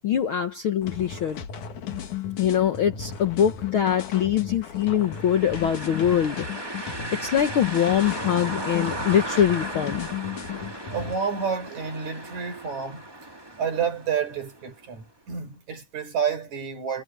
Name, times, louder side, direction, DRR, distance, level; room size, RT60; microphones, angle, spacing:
voice 1, 0.0-1.4 2.4-10.1, left 9 dB, 60° left, 1.4 m, -23 dB
sound 1, 0.8-11.2, left 8 dB, 75° left, 3.5 m, -35 dB
sound 2, 5.0-14.8, right 2 dB, 10° right, 1.1 m, -36 dB
voice 2, 10.9-13.0 13.6-17.0, right 6 dB, 65° right, 5.5 m, -29 dB
omnidirectional pair, 3.5 m